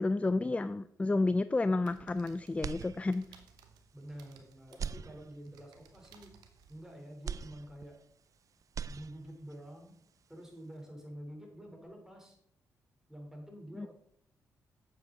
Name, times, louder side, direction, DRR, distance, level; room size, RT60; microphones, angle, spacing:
voice 1, 0.0-3.3 13.8-13.9, left 2 dB, 20° left, 14 dB, 0.4 m, -30 dB
sound 1, 1.8-7.4, right 6 dB, 85° right, 0.9 m, -61 dB
sound 2, 2.6-3.5 3.9-4.0 4.7-5.7 7.2-8.3 8.6-9.6, right 7 dB, 50° right, 0.4 m, -42 dB
voice 2, 3.9-6.4 6.7-8.0 8.9-10.0 10.3-12.4 13.1-13.9, equal, 5° right, 1 dB, 3.4 m, -48 dB
8.6 x 7.3 x 3.9 m, 0.67 s
supercardioid pair, 55°, 7 cm